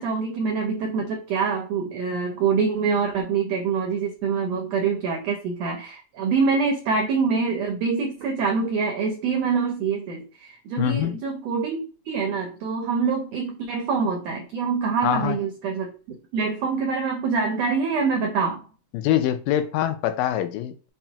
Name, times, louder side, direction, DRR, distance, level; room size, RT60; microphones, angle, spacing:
voice 1, 0.0-11.8 12.0-18.6, right 5 dB, 85° right, 1.4 m, -25 dB
voice 2, 10.8-11.2 15.0-15.4 18.9-20.9, left 11 dB, 85° left, 2.1 m, -24 dB
5.6 x 2.1 x 2.8 m
omnidirectional pair, 3.7 m